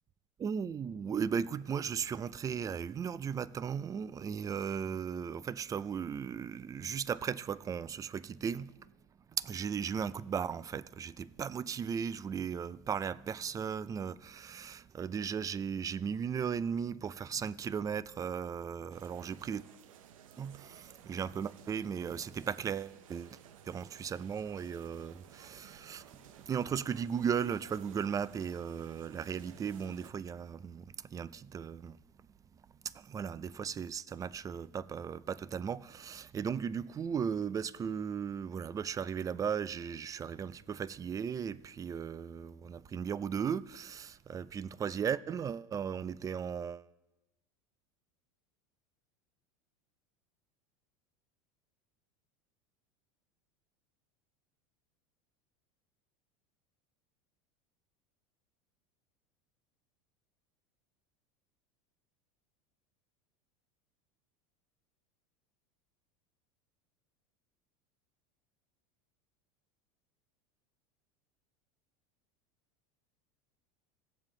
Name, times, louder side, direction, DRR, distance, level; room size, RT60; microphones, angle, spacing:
voice 1, 0.4-8.9 9.4-19.6 20.4-23.4 23.7-26.0 26.5-32.0 32.8-46.9, right 7 dB, 20° right, 0.4 m, -36 dB
sound 1, 18.9-30.1, right 9 dB, 90° right, 0.8 m, -56 dB
18.5 x 7.2 x 3.8 m
supercardioid pair, 115°, 17 cm